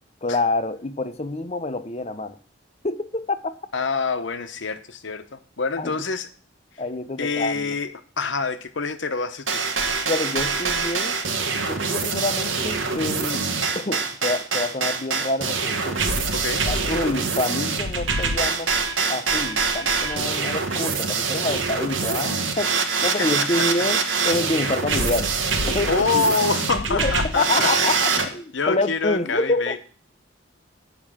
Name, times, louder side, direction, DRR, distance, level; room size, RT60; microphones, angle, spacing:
voice 1, 0.2-2.3 2.8-3.5 5.8-5.9 6.8-7.7 10.1-11.2 11.6-13.4 13.7-16.0 16.7-18.7 19.1-22.7 23.0-25.3 25.7-26.2 26.7-29.8, left 2 dB, 30° left, 11 dB, 0.8 m, -27 dB
voice 2, 3.7-6.3 7.2-7.9 8.2-9.6 16.3-16.6 23.0-23.3 25.9-27.7 28.1-28.2 28.5-29.8, left 4 dB, 70° left, 10 dB, 1.0 m, -26 dB
sound 1, 9.5-28.3, right 4 dB, 80° right, 1.5 m, -24 dB
8.6 x 6.1 x 7.5 m, 0.43 s
head